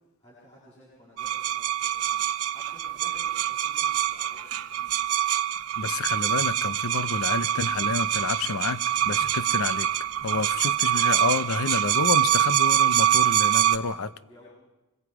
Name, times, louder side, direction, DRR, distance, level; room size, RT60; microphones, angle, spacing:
voice 1, 0.0-5.1 14.2-14.5, left 1 dB, 30° left, 7.7 m, -54 dB
sound 1, 1.2-13.8, right 11 dB, 85° right, 0.9 m, -25 dB
voice 2, 5.8-9.9 10.2-14.1, left 4 dB, 75° left, 0.7 m, -29 dB
25.5 x 22.0 x 5.0 m
head